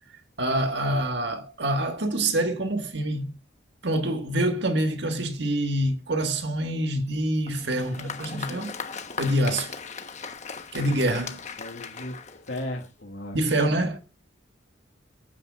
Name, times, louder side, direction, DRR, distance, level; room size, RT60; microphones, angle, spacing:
voice 1, 0.4-3.4 3.8-8.7 9.2-9.7 10.7-11.4 13.3-14.0, right 1 dB, 60° right, 1.7 m, -26 dB
Applause, 7.5-13.0, left 5 dB, 35° left, 1.1 m, -38 dB
voice 2, 10.8-11.1 11.6-13.6, left 1 dB, 65° left, 1.8 m, -37 dB
27.5 x 9.5 x 2.4 m
head